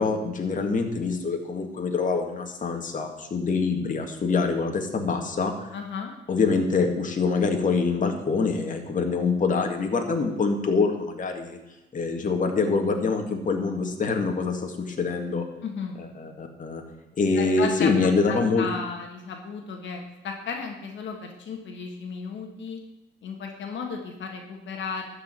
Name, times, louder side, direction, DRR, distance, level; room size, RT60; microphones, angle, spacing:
voice 1, 0.0-5.7 6.3-11.6 11.9-15.4 16.0-16.8 17.2-18.7, left 4 dB, 40° left, 3 dB, 1.9 m, -25 dB
voice 2, 5.7-6.1 15.6-16.0 17.4-17.9 18.3-22.8 23.2-25.1, left 5 dB, 70° left, 3 dB, 1.7 m, -34 dB
12.5 x 5.1 x 8.9 m, 0.95 s
cardioid pair, 90°, 20 cm